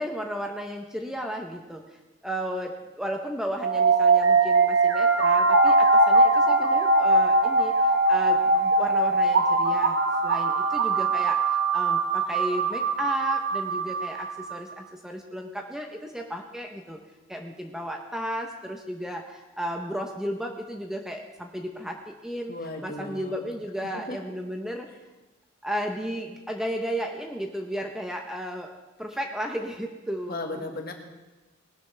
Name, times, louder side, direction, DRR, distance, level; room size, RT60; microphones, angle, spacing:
voice 1, 0.0-1.8 2.2-10.0 10.2-17.0 17.3-22.5 22.8-24.9 25.6-28.7 29.0-30.6, equal, 5° right, 3 dB, 0.7 m, -34 dB
sound 1, 3.6-14.6, right 3 dB, 55° right, 1.1 m, -21 dB
voice 2, 22.5-23.5 23.9-24.2 30.3-30.9, left 2 dB, 50° left, 3 dB, 1.6 m, -36 dB
19.5 x 12.0 x 3.3 m, 1.1 s
head